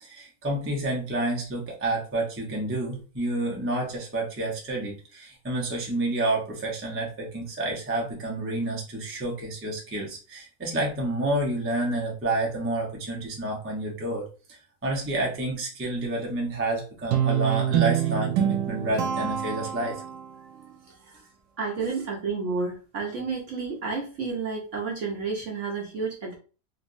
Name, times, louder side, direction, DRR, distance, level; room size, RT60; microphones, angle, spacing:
voice 1, 0.0-20.0, right 2 dB, 15° right, -2 dB, 0.4 m, -29 dB
Guitar, 17.1-20.4, right 10 dB, 80° right, 1.3 m, -26 dB
voice 2, 20.5-21.3 21.6-26.3, right 4 dB, 55° right, -1 dB, 0.9 m, -31 dB
3.3 x 3.0 x 2.6 m, 0.35 s
omnidirectional pair, 2.0 m